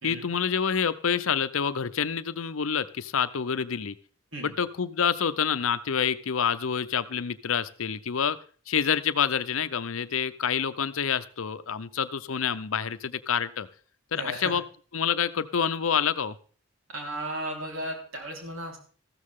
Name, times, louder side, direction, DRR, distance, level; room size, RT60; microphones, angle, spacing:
voice 1, 0.0-3.9 4.4-8.4 8.7-13.7 14.1-14.6 14.9-16.4, left 7 dB, 75° left, 13 dB, 0.7 m, -27 dB
voice 2, 14.1-14.5 16.9-18.8, right 1 dB, 70° right, 1 dB, 4.1 m, -35 dB
14.5 x 13.0 x 3.7 m, 0.42 s
head